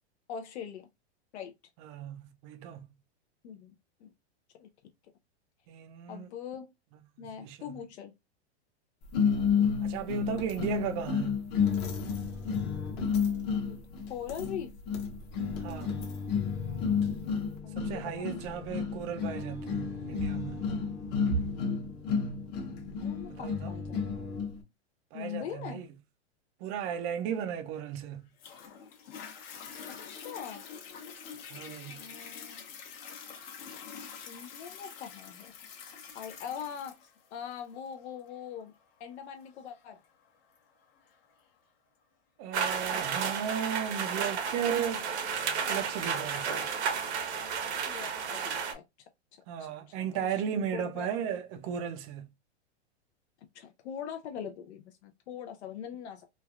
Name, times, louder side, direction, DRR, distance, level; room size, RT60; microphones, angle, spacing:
voice 1, 0.3-0.9 1.3-1.5 3.4-3.7 4.0-4.1 4.6-4.7 6.1-6.7 7.2-8.1 13.6-13.8 14.1-14.7 17.6-18.6 22.9-24.3 25.1-25.8 29.9-30.6 31.9-32.6 34.3-35.5 36.1-38.7 39.0-40.0 47.7-48.8 49.6-50.4 50.7-51.1 53.5-56.3, left 8 dB, 75° left, 0.5 m, -42 dB
voice 2, 1.8-2.9 5.7-6.3 7.4-7.8 9.8-11.4 15.6-16.0 17.8-20.7 23.3-23.7 25.1-25.9 26.6-28.2 31.5-32.0 42.4-45.1 45.7-46.7 49.5-52.3, right 8 dB, 30° right, 0.4 m, -35 dB
sound 1, 9.1-24.6, left 6 dB, 30° left, 0.8 m, -31 dB
Toilet flush, 28.4-41.4 42.0-42.1, left 7 dB, 60° left, 1.0 m, -47 dB
sound 2, 42.5-48.7, right 6 dB, 75° right, 0.9 m, -32 dB
3.2 x 2.3 x 2.3 m
hypercardioid pair, 145°, 34 cm